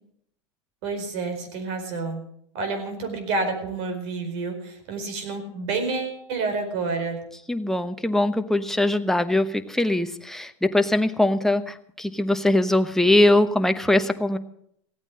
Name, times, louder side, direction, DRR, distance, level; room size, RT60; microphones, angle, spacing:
voice 1, 0.8-2.2 2.5-7.2, right 3 dB, 65° right, 6 dB, 4.8 m, -29 dB
voice 2, 7.5-14.4, left 1 dB, 5° left, 8 dB, 1.0 m, -21 dB
16.5 x 8.9 x 7.5 m, 0.70 s
supercardioid pair, 120°, 15 cm